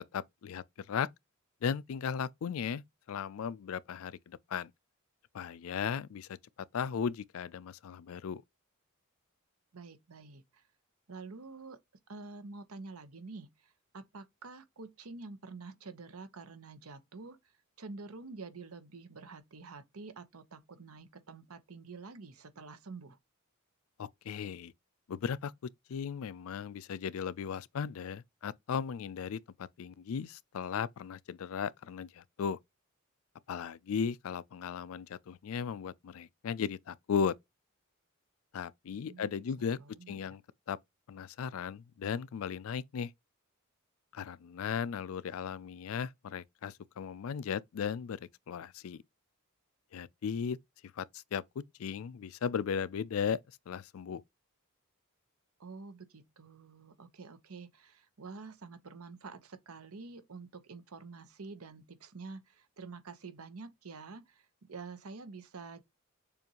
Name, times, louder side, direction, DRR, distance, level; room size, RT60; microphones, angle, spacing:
voice 1, 0.1-1.1 1.6-4.7 5.3-6.4 6.7-8.4 24.0-24.7 25.1-25.5 25.9-32.6 33.5-37.3 38.5-39.8 40.1-40.4 40.7-40.8 41.1-43.1 44.1-49.0 49.9-50.6 51.0-53.4 53.7-54.2, left 7 dB, 70° left, 0.4 m, -36 dB
voice 2, 9.7-10.6 11.1-11.8 12.1-17.4 17.8-23.2 38.9-39.3 39.8-40.4 55.6-65.8, right 4 dB, 85° right, 0.9 m, -48 dB
6.9 x 2.5 x 2.9 m
head